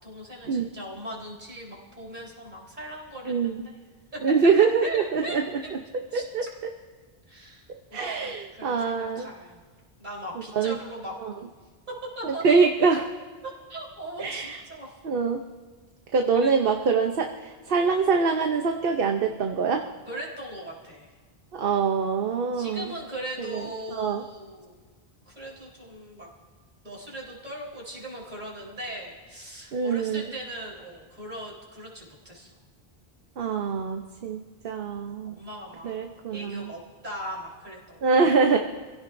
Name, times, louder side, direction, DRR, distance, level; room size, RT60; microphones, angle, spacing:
voice 1, 0.0-3.8 4.1-4.2 4.6-5.8 6.1-6.5 7.3-7.7 8.1-9.6 10.0-11.5 11.9-12.7 13.4-14.9 16.3-16.5 20.1-21.1 22.5-24.8 25.3-26.3 26.8-32.5 35.2-38.0, right 1 dB, 50° right, -4 dB, 4.3 m, -39 dB
voice 2, 3.3-3.6 4.2-5.5 6.1-6.4 7.9-9.3 10.5-10.8 11.2-11.3 12.2-13.0 14.2-14.6 15.0-15.4 16.1-19.9 21.5-22.9 23.4-24.2 29.7-30.3 33.4-35.4 35.8-36.7 38.0-38.6, right 5 dB, 65° right, 4 dB, 1.0 m, -24 dB
27.5 x 16.5 x 2.6 m, 1.4 s
omnidirectional pair, 1.0 m